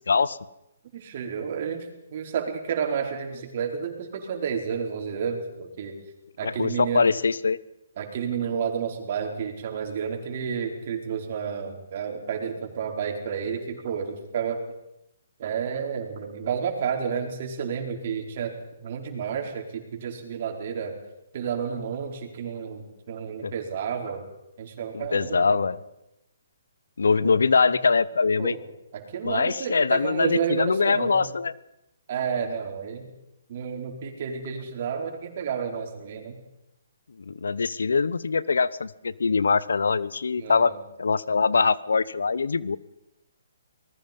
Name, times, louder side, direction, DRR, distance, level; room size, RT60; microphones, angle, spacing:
voice 1, 0.1-0.4 6.4-7.6 23.4-23.5 24.9-25.8 27.0-28.5 29.2-31.5 37.3-40.7 41.0-42.8, left 4 dB, 80° left, 19 dB, 0.9 m, -23 dB
voice 2, 0.9-5.9 6.4-7.0 8.0-14.6 15.4-18.5 18.8-20.9 21.3-24.2 24.6-25.7 27.2-27.4 28.4-28.6 28.9-31.3 32.1-33.1 33.5-36.4 40.4-40.8, right 7 dB, 50° right, 3 dB, 4.7 m, -31 dB
24.0 x 20.0 x 5.4 m, 0.88 s
hypercardioid pair, 145°, 0 cm